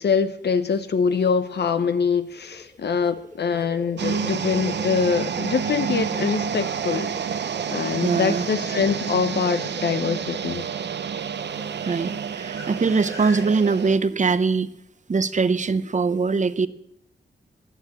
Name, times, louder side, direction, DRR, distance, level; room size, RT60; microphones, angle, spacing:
voice 1, 0.0-10.7, left 6 dB, 70° left, 12 dB, 0.7 m, -24 dB
sound 1, 2.2-14.4, left 1 dB, 20° left, 2.3 m, -43 dB
sound 2, 4.0-14.0, right 7 dB, 80° right, 0.7 m, -29 dB
voice 2, 8.0-8.5 11.8-14.7 15.1-16.7, right 4 dB, 45° right, 14 dB, 0.7 m, -22 dB
11.5 x 10.0 x 8.0 m, 0.78 s
wide cardioid pair, 90°, 18 cm